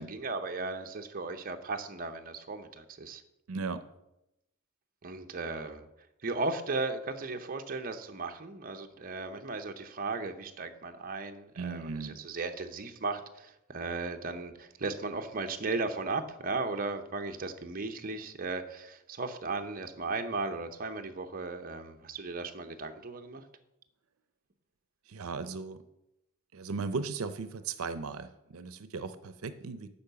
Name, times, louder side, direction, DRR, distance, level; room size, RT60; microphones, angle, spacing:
voice 1, 0.0-3.2 5.0-5.9 6.2-23.4, right 3 dB, 45° right, 5 dB, 0.7 m, -36 dB
voice 2, 3.5-3.8 11.5-12.2 25.1-25.8 26.5-29.9, right 4 dB, 85° right, 12 dB, 0.6 m, -37 dB
8.6 x 5.5 x 6.8 m, 0.88 s
head